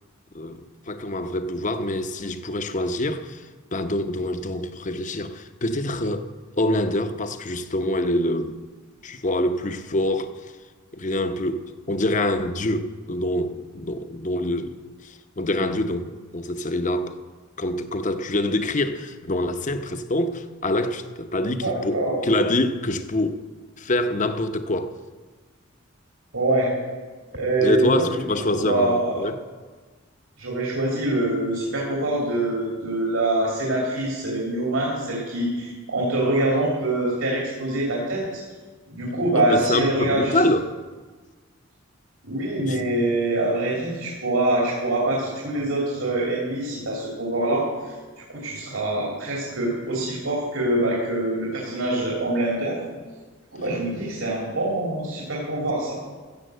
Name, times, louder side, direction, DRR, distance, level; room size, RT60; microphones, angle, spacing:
voice 1, 0.3-6.3 6.6-8.6 9.0-10.3 10.9-17.2 17.6-23.4 23.8-25.0 27.6-29.4 39.3-40.7 42.7-42.8, left 1 dB, 35° left, 0.7 m, -25 dB
voice 2, 21.5-22.2 26.3-26.7 27.3-28.0 28.4-29.2 30.4-38.4 38.9-40.4 42.2-52.8 53.5-56.0, right 1 dB, 80° right, 2.8 m, -24 dB
14.5 x 7.2 x 7.8 m
head